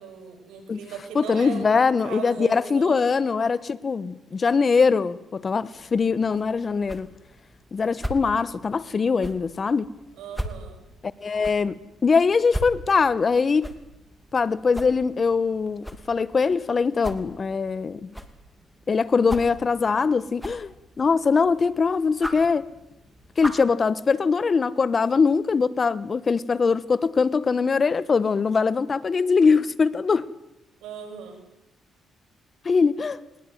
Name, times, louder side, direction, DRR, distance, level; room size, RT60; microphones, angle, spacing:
voice 1, 0.0-3.0 10.2-10.8 30.8-31.4, right 6 dB, 90° right, 7.1 m, -38 dB
voice 2, 1.1-7.1 7.7-9.9 11.2-13.7 14.3-18.1 18.9-22.7 23.4-30.3 32.6-33.2, left 5 dB, 40° left, 1.1 m, -22 dB
sound 1, 5.7-23.8, equal, ahead, 2.7 m, -40 dB
21.0 x 21.0 x 9.4 m
cardioid pair, 90°, 0 cm